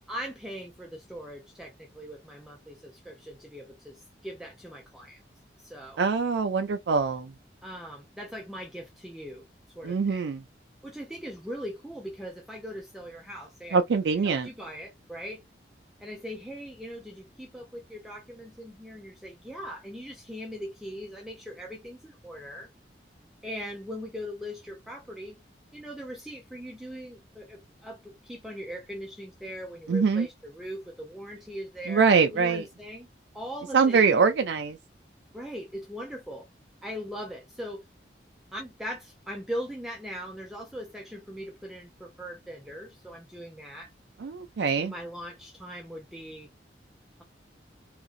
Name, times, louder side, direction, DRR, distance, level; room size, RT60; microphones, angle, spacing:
voice 1, 0.1-5.2 5.6-6.0 7.6-9.5 9.8-10.2 10.8-13.8 14.2-15.4 16.0-22.7 23.4-25.4 25.7-33.1 33.3-34.2 35.3-36.5 36.8-37.8 38.5-43.9 44.8-46.5, equal, ahead, 0.4 m, -40 dB
voice 2, 6.0-7.3 9.8-10.4 13.7-14.5 29.9-30.3 31.9-32.6 33.7-34.8 44.2-44.9, right 5 dB, 75° right, 0.4 m, -23 dB
2.9 x 2.5 x 2.4 m
head